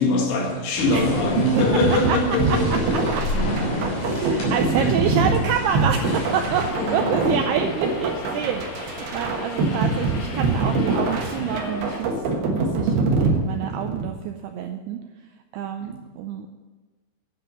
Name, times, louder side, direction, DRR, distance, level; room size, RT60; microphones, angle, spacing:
voice 1, 0.0-3.1 4.8-4.9 6.8-7.2 13.2-13.5 15.8-16.0, left 2 dB, 85° left, 0 dB, 4.3 m, -23 dB
sound 1, 0.7-6.7, left 1 dB, 50° left, 4.6 m, -29 dB
sound 2, 1.6-14.1, right 3 dB, 65° right, 3.0 m, -24 dB
voice 2, 4.0-15.0 15.5-16.5, right 8 dB, 90° right, 5 dB, 2.3 m, -27 dB
Subway metro underground, 5.9-12.0, left 3 dB, 70° left, 4.5 m, -36 dB
10.0 x 7.7 x 8.0 m, 1.3 s
omnidirectional pair, 5.3 m